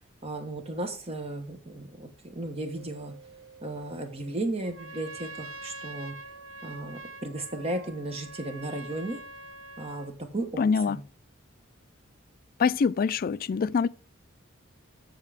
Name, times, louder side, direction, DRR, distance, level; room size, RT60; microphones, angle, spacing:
voice 1, 0.2-3.1 3.6-6.2 6.6-9.2 9.8-11.0, right 2 dB, 30° right, 1.0 m, -35 dB
sound 1, 2.8-8.1, right 6 dB, 90° right, 1.6 m, -56 dB
Trumpet, 4.6-10.1, right 2 dB, 70° right, 0.8 m, -44 dB
voice 2, 10.6-11.0 12.6-13.9, left 5 dB, 45° left, 0.3 m, -24 dB
7.9 x 6.5 x 4.8 m
head